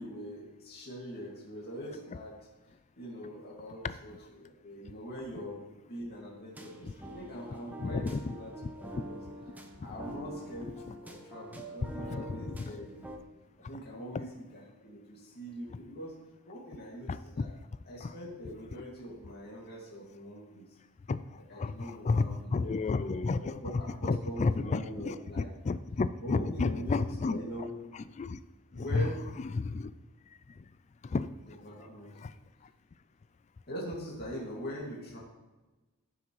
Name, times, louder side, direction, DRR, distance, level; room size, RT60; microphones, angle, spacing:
voice 1, 0.0-2.4 3.0-5.6 5.9-9.2 9.8-10.7 11.0-13.1 13.7-16.1 16.5-17.5 17.9-20.6 21.5-25.5 26.2-27.0 27.2-27.7 28.7-29.2 31.5-32.1 33.7-35.2, equal, 45° left, -5 dB, 2.3 m, -43 dB
sound 1, 6.5-13.2, right 1 dB, 10° right, 0.9 m, -46 dB
voice 2, 7.8-8.4 8.6-8.7 10.6-11.0 12.0-12.8 17.1-17.5 18.0-18.1 18.4-18.5 21.1-21.2 21.5-27.4 27.9-28.4 28.7-29.1 29.4-29.9 31.0-31.3 32.2-32.3, left 4 dB, 30° left, 14 dB, 0.3 m, -32 dB
14.5 x 6.0 x 3.2 m, 1.1 s
head